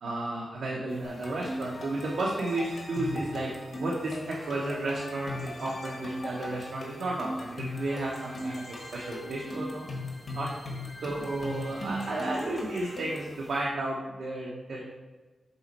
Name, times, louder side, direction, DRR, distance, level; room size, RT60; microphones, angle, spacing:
voice 1, 0.0-3.5 3.8-9.9 10.3-10.5 11.0-14.8, right 2 dB, 80° right, -3 dB, 0.8 m, -33 dB
sound 1, 0.9-13.6, left 1 dB, 90° left, 1.2 m, -53 dB
sound 2, 1.0-13.4, left 1 dB, 50° left, 1.4 m, -39 dB
5.6 x 4.3 x 4.1 m, 1.3 s
wide cardioid pair, 160°, 0 cm